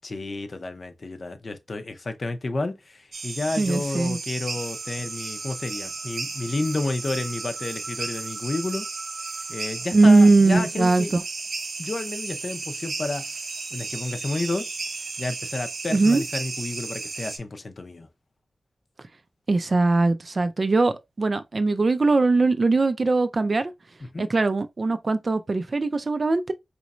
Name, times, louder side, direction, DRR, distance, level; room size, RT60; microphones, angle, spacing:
voice 1, 0.0-8.9 9.5-11.1 11.8-13.3 13.7-14.7 15.2-18.1 24.1-24.3, left 2 dB, 45° left, 0.6 m, -31 dB
sound 1, 3.1-17.4, right 4 dB, 85° right, 0.8 m, -34 dB
voice 2, 3.6-4.2 9.9-11.0 15.9-16.2 19.5-23.7 24.2-26.5, right 3 dB, 45° right, 0.4 m, -20 dB
4.1 x 3.1 x 2.4 m
wide cardioid pair, 100°, 0 cm